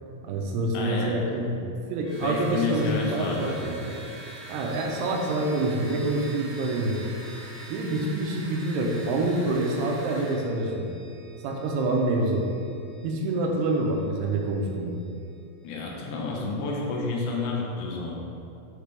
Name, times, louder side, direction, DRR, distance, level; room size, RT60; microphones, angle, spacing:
voice 1, 0.2-3.9 4.5-7.0 7.7-10.9 11.4-12.5 13.0-14.9, right 2 dB, 80° right, 0 dB, 2.7 m, -27 dB
voice 2, 0.7-1.1 2.2-3.6 15.6-18.1, left 3 dB, 85° left, -2 dB, 1.8 m, -30 dB
sound 1, 2.0-15.8, right 2 dB, 70° left, 2.5 m, -51 dB
sound 2, 2.1-10.4, right 1 dB, 55° right, 1.7 m, -45 dB
7.3 x 3.3 x 5.1 m, 2.6 s
omnidirectional pair, 4.8 m